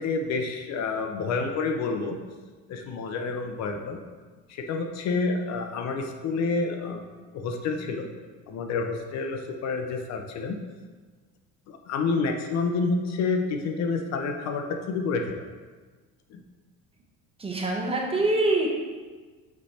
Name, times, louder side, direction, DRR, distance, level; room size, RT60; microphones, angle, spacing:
voice 1, 0.0-2.2 2.7-4.0 4.5-7.0 7.3-8.1 8.5-10.6 11.7-15.3 16.3-16.4, left 4 dB, 55° left, 4 dB, 0.7 m, -28 dB
voice 2, 17.4-18.7, right 2 dB, 20° right, -1 dB, 1.1 m, -24 dB
8.3 x 3.3 x 4.2 m, 1.4 s
cardioid pair, 120°, 31 cm